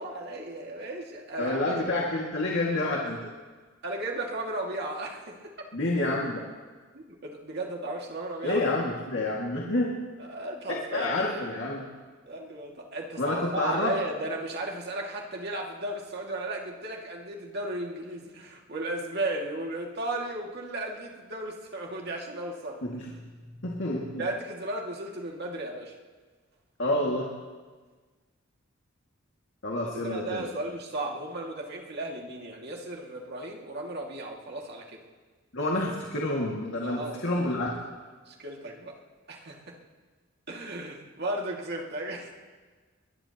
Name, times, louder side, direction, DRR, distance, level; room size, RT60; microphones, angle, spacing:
voice 1, 0.0-1.8 3.8-5.5 6.9-8.6 10.2-11.2 12.2-22.8 24.2-25.9 29.9-35.0 36.8-37.8 38.3-39.0 39.3-39.8 40.5-42.3, right 2 dB, 55° right, 0 dB, 2.2 m, -35 dB
voice 2, 1.4-3.2 5.7-6.4 8.4-9.9 10.7-11.9 13.2-13.9 22.8-23.1 23.6-24.3 26.8-27.3 29.6-30.5 35.5-37.7, left 2 dB, 65° left, -3 dB, 2.1 m, -28 dB
23.0 x 21.0 x 3.0 m, 1.4 s
head